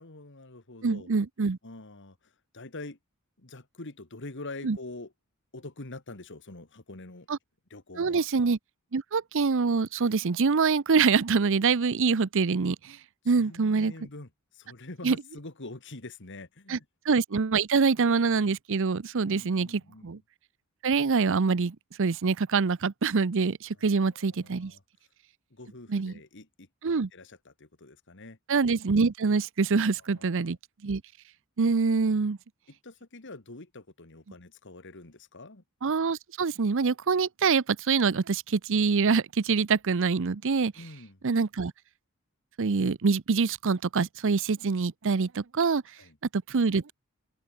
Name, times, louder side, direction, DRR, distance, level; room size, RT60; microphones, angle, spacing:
voice 1, 0.0-1.1 1.6-2.2 2.5-3.0 3.4-5.1 5.5-7.3 7.7-8.3 13.2-16.8 19.2-20.1 23.8-24.8 25.5-26.7 27.1-28.4 30.1-30.6 32.8-35.6 40.8-41.2 46.0-46.2, left 2 dB, 55° left, 2.1 m, -45 dB
voice 2, 0.8-1.6 4.6-4.8 7.3-7.4 8.0-8.6 8.9-13.0 13.3-13.9 15.0-15.2 16.7-16.8 17.1-20.2 20.8-24.7 25.9-26.1 26.8-27.1 28.5-30.6 30.8-31.0 31.6-32.4 35.8-40.7 41.2-41.7 42.6-45.8 46.3-46.9, right 4 dB, 60° right, 0.6 m, -25 dB
open air
head